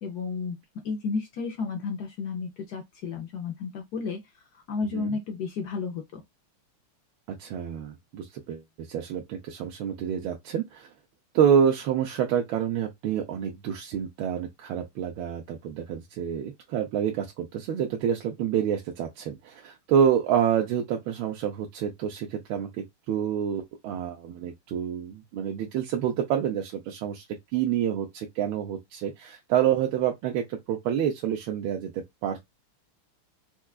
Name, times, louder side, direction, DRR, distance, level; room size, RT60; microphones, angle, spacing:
voice 1, 0.0-0.6 0.8-4.2 4.7-6.2, left 4 dB, 70° left, 0.9 m, -32 dB
voice 2, 7.3-8.6 8.9-10.9 11.3-27.2 27.5-32.5, right 8 dB, 75° right, 1.4 m, -28 dB
4.5 x 2.3 x 2.3 m
omnidirectional pair, 2.4 m